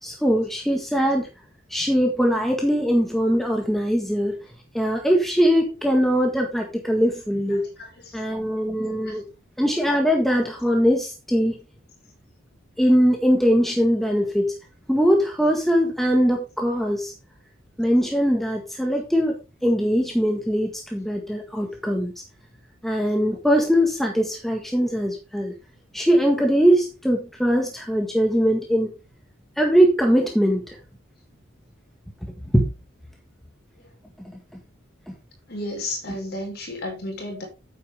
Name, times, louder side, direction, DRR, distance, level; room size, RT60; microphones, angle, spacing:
voice 1, 0.0-1.3 1.7-4.4 4.7-7.7 8.1-9.2 9.6-11.6 12.8-14.5 14.9-17.1 17.8-22.1 22.8-25.5 25.9-28.9 29.6-30.8 32.2-32.7, equal, ahead, 1.6 m, -21 dB
voice 2, 7.5-8.4 9.1-9.2 33.8-33.9 35.5-37.4, left 1 dB, 50° left, 5.2 m, -33 dB
9.4 x 8.7 x 3.6 m
head